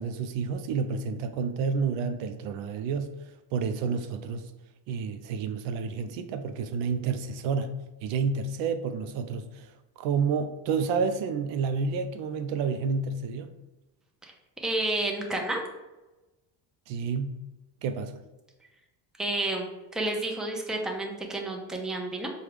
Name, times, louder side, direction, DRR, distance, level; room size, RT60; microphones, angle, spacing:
voice 1, 0.0-3.2 3.5-4.4 4.9-13.5 16.9-17.4 17.8-18.2, right 5 dB, 70° right, 0.5 m, -30 dB
voice 2, 14.6-15.6 19.2-19.7 19.9-22.3, right 2 dB, ahead, 0.5 m, -30 dB
4.6 x 2.3 x 3.3 m
supercardioid pair, 90°, 46 cm